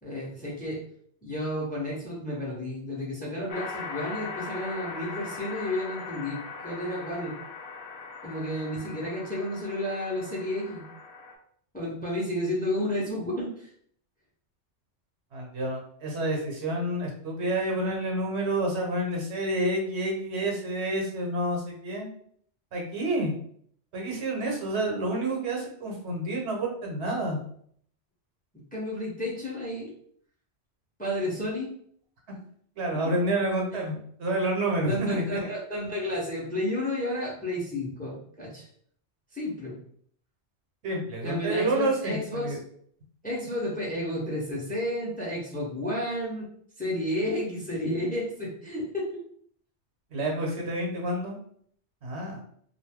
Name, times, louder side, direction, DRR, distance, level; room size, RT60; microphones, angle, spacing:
voice 1, 0.0-0.8 1.2-7.3 8.2-10.8 11.7-13.7 28.7-29.9 31.0-31.7 33.7-33.8 34.9-38.7 39.3-39.8 41.2-42.6 43.2-46.5 46.8-49.2, left 1 dB, 10° left, -4 dB, 0.7 m, -31 dB
sound 1, 3.5-11.3, left 4 dB, 65° left, 0.8 m, -40 dB
voice 2, 15.3-22.1 22.7-23.3 23.9-27.4 32.8-35.4 40.8-42.6 50.1-51.4 52.0-52.4, right 1 dB, 70° right, 0 dB, 1.0 m, -29 dB
2.5 x 2.3 x 3.5 m, 0.62 s
omnidirectional pair, 1.2 m